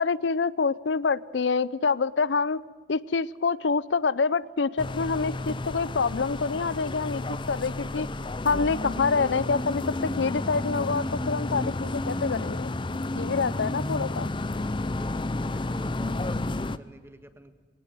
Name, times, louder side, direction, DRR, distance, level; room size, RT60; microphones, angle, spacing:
voice 1, 0.0-2.6 2.9-8.1 8.4-12.7 13.1-14.3, left 4 dB, 80° left, 18 dB, 0.6 m, -26 dB
sound 1, 4.8-16.8, left 2 dB, 25° left, 0.7 m, -31 dB
voice 2, 14.7-17.5, equal, 15° right, 9 dB, 1.6 m, -48 dB
21.5 x 18.0 x 7.7 m, 1.4 s
head